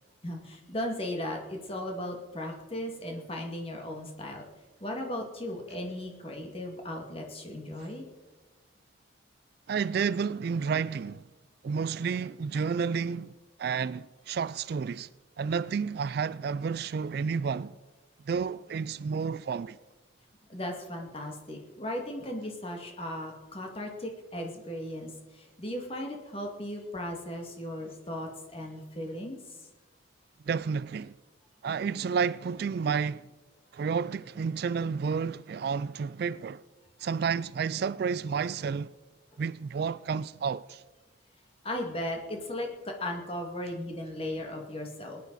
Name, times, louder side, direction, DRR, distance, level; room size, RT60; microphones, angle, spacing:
voice 1, 0.2-4.5 4.8-8.0 20.5-29.4 41.6-45.2, left 1 dB, 30° left, 2.2 m, -36 dB
voice 2, 9.7-11.2 11.6-13.3 13.6-15.1 15.4-17.8 18.3-19.8 30.4-31.1 31.6-33.3 33.7-36.6 37.0-38.9 39.4-40.8, right 6 dB, 55° right, 0.3 m, -31 dB
20.0 x 10.5 x 4.1 m
head